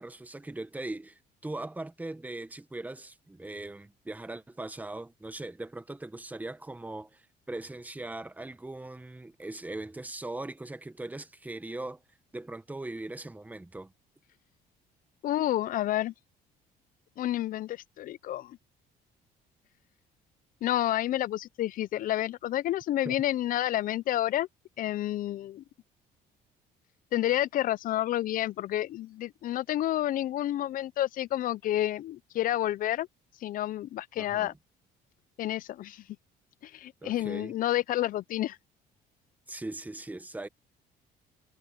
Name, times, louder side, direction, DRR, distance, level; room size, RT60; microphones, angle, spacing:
voice 1, 0.0-12.0 12.3-13.9 23.0-23.1 34.2-34.5 37.0-37.5 39.5-40.5, right 2 dB, 10° right, 1.3 m, -40 dB
voice 2, 15.2-16.1 17.2-18.6 20.6-24.5 24.8-25.6 27.1-33.1 33.4-34.5 35.4-36.0 36.6-38.6, left 13 dB, 55° left, 0.5 m, -29 dB
cardioid pair, 110°, 17 cm